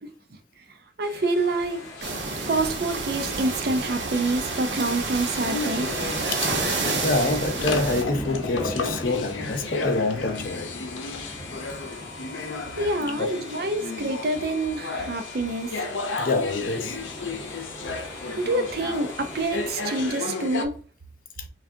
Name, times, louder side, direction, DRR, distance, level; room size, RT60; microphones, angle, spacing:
sound 1, 1.0-20.7, left 4 dB, 90° left, 0.6 m, -34 dB
voice 1, 1.0-1.9 2.5-5.9 12.8-15.9 18.4-20.7, right 2 dB, 55° right, 0.5 m, -27 dB
sound 2, 1.3-20.1, equal, ahead, 1.5 m, -40 dB
sound 3, 2.0-8.0, right 3 dB, 80° right, 1.0 m, -29 dB
voice 2, 7.0-10.7 13.2-13.4 16.2-17.0, left 2 dB, 45° left, 0.5 m, -26 dB
5.7 x 2.4 x 2.7 m
head